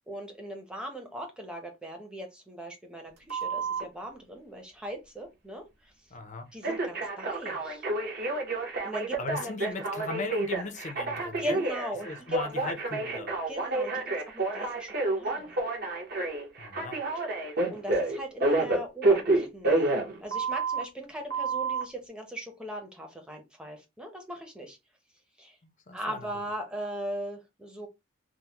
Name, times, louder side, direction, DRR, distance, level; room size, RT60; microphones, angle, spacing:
voice 1, 0.1-6.1 6.5-7.8 8.8-9.5 11.4-12.4 13.5-15.6 17.7-24.8 25.4-25.6 25.9-27.9, right 1 dB, 5° right, 0.7 m, -39 dB
Telephone, 3.3-3.8 6.6-20.8 21.3-21.8, right 2 dB, 50° right, 0.9 m, -29 dB
voice 2, 6.1-6.5 9.2-11.6 12.0-13.3 16.6-17.0 25.6-26.3, left 3 dB, 35° left, 0.5 m, -38 dB
3.5 x 2.0 x 2.9 m
head